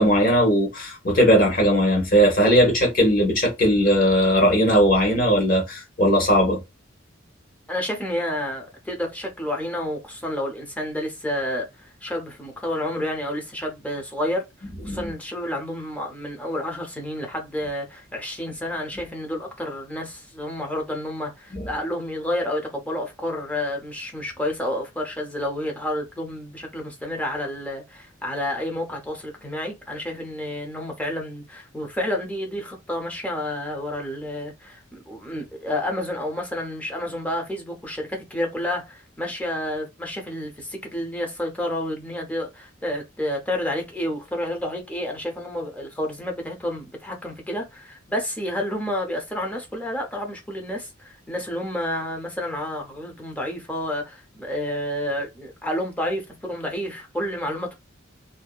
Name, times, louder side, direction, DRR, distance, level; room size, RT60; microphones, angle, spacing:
voice 1, 0.0-6.6 14.9-15.1 21.5-21.7, equal, 45° left, 1.0 m, -19 dB
voice 2, 7.7-57.7, left 1 dB, 5° left, 0.5 m, -30 dB
2.7 x 2.1 x 2.3 m
head